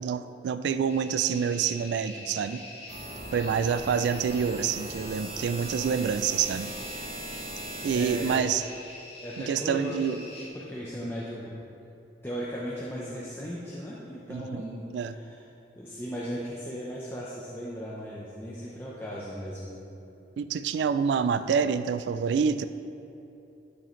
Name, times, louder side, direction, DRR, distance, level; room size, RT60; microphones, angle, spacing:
voice 1, 0.0-2.6 3.3-6.7 7.8-8.6 9.4-10.2 14.3-14.6 14.9-15.1 20.4-22.7, right 7 dB, 80° right, 12 dB, 0.3 m, -27 dB
sound 1, 0.9-10.5, left 2 dB, 35° left, 1.4 m, -45 dB
sound 2, 2.9-8.4, right 1 dB, 35° right, 1.1 m, -39 dB
voice 2, 7.9-8.4 9.2-11.6 12.2-15.5 15.8-19.7, equal, 15° left, -7 dB, 0.7 m, -37 dB
11.5 x 6.5 x 3.1 m, 2.8 s
head